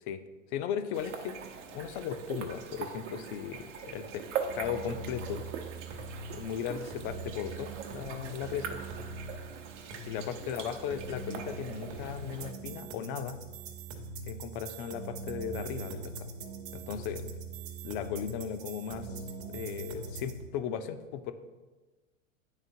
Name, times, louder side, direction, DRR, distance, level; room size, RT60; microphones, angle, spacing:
voice 1, 0.5-1.4 1.7-4.3 4.5-5.5 6.3-8.8 10.0-13.4 14.3-16.3 16.7-17.2 17.8-19.2 19.5-21.3, left 8 dB, 40° left, 10 dB, 0.5 m, -36 dB
sound 1, 0.9-12.5, right 6 dB, 65° right, 0.8 m, -42 dB
sound 2, 4.4-20.4, right 3 dB, 35° right, 0.9 m, -42 dB
9.9 x 3.5 x 2.7 m, 1.2 s
hypercardioid pair, 105°, 40 cm